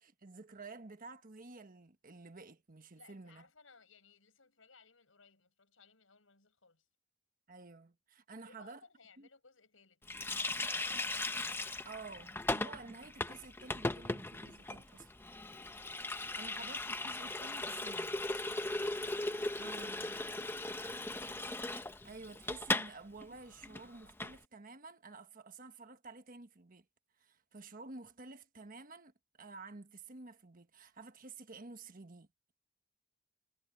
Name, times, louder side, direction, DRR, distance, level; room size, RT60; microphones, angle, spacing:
voice 1, 0.0-3.4 7.5-8.8 9.2-9.3 11.8-15.1 16.4-18.1 19.6-20.2 22.0-26.9 27.2-29.1 29.4-32.5, right 3 dB, 45° right, 1.3 m, -51 dB
voice 2, 3.0-6.9 8.3-11.1, left 4 dB, 85° left, 5.6 m, -64 dB
Water tap faucet, 10.1-22.9 23.2-23.3 23.6-24.4, left 2 dB, 10° left, 0.8 m, -38 dB
head